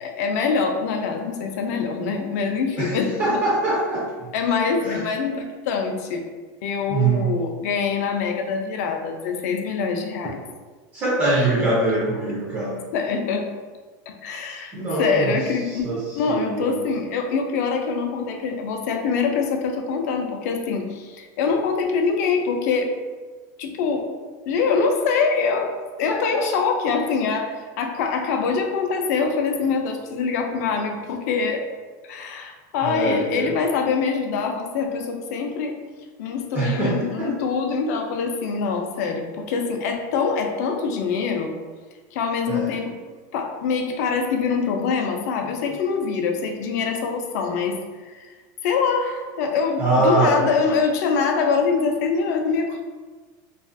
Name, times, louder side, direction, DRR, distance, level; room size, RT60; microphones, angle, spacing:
voice 1, 0.0-3.4 4.3-6.3 6.6-10.4 11.4-11.5 12.9-13.5 14.1-15.8 16.2-22.9 23.6-24.1 24.5-25.7 26.0-31.6 32.1-35.8 36.2-41.5 42.1-42.9 43.3-47.8 48.1-48.3 48.6-52.8, left 5 dB, 60° left, 4 dB, 0.4 m, -24 dB
voice 2, 2.8-4.3 4.8-5.0 6.9-7.3 10.9-12.8 14.7-15.3 15.7-16.8 32.8-33.5 36.5-37.3 42.5-42.8 49.8-50.4, right 2 dB, 20° right, -6 dB, 0.4 m, -23 dB
2.4 x 2.4 x 2.5 m, 1.4 s
supercardioid pair, 175°, 10 cm